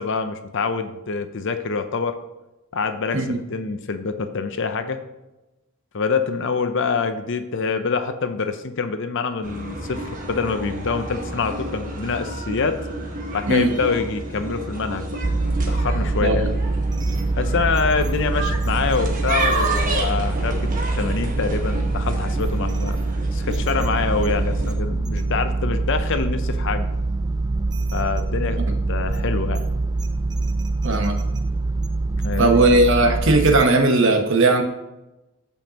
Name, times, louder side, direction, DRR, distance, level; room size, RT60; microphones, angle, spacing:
voice 1, 0.0-2.1 2.7-5.0 5.9-12.8 13.3-15.2 15.7-16.5 17.4-20.7 21.0-23.0 23.3-26.9 27.9-28.6 28.9-29.7 32.2-32.5, left 5 dB, 55° left, 9 dB, 0.6 m, -25 dB
sound 1, 9.4-24.7, right 2 dB, 35° right, 1.4 m, -30 dB
sound 2, 15.2-33.6, right 2 dB, 20° right, 0.3 m, -24 dB
voice 2, 30.8-31.2 32.4-34.6, right 2 dB, 55° right, 4 dB, 1.1 m, -17 dB
13.5 x 5.3 x 2.9 m, 0.99 s
head